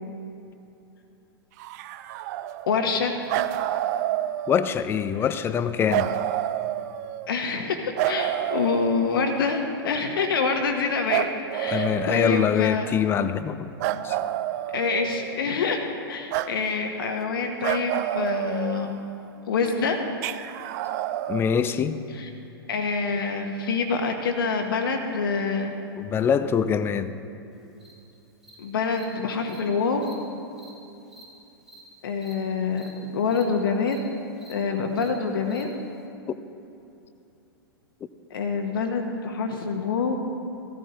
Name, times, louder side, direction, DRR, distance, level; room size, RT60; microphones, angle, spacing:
sound 1, 1.6-3.0 3.3-4.9 5.9-7.4 8.0-9.6 11.1-12.8 13.8-15.5 16.3-16.5 17.6-19.3 20.2-21.4, right 13 dB, 40° right, 0.4 m, -29 dB
voice 1, 2.7-3.1 7.3-11.3 11.5-12.9 14.7-18.9 19.5-20.0 22.1-22.3 22.7-25.7 28.6-30.1 32.0-34.0 34.5-35.7 38.3-40.2, left 5 dB, 60° left, 4 dB, 1.1 m, -26 dB
voice 2, 4.5-6.1 11.7-13.7 14.0-14.2 21.3-22.0 26.0-27.1, left 7 dB, 20° left, 13 dB, 0.5 m, -24 dB
Cricket, 27.8-27.9 28.4-28.5 28.9-29.0 29.5-29.6 30.0-30.1 30.6-30.7 31.1-31.2 31.7-31.8 32.2-32.3 32.8-32.9 33.3-33.4 33.9-34.0 34.4-34.5 35.0-35.1 35.5-35.6, right 1 dB, 5° right, 2.7 m, -49 dB
15.5 x 13.5 x 3.0 m, 2.8 s
figure-of-eight pair, 100°, 13 cm